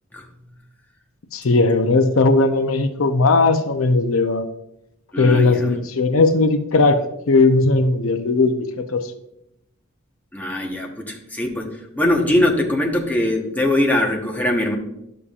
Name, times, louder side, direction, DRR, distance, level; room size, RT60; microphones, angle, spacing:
voice 1, 1.3-4.4 5.2-9.1, left 3 dB, 80° left, 8 dB, 0.6 m, -17 dB
voice 2, 5.1-5.7 10.3-11.7 12.0-14.7, left 1 dB, 10° left, -1 dB, 1.1 m, -21 dB
11.0 x 7.0 x 2.4 m, 0.82 s
head